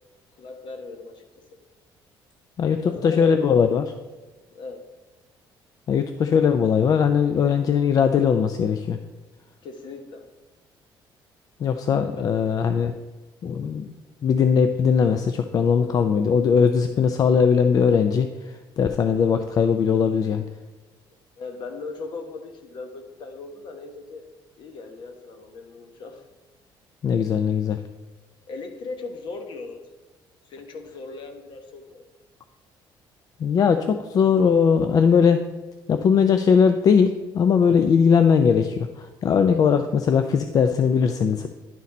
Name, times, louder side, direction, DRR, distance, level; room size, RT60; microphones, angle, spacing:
voice 1, 0.4-1.2 1.5-1.6 2.8-3.4 4.5-4.9 9.6-10.3 12.1-12.4 21.4-24.2 24.6-26.2 28.5-29.8 30.4-32.0, left 3 dB, 60° left, 6 dB, 1.0 m, -38 dB
voice 2, 2.6-3.9 5.9-9.0 11.6-12.9 13.4-13.9 14.2-20.4 27.0-27.8 33.4-35.5 35.9-41.5, left 6 dB, 45° left, 8 dB, 0.4 m, -20 dB
10.5 x 4.1 x 4.2 m, 1.2 s
cardioid pair, 135°, 9 cm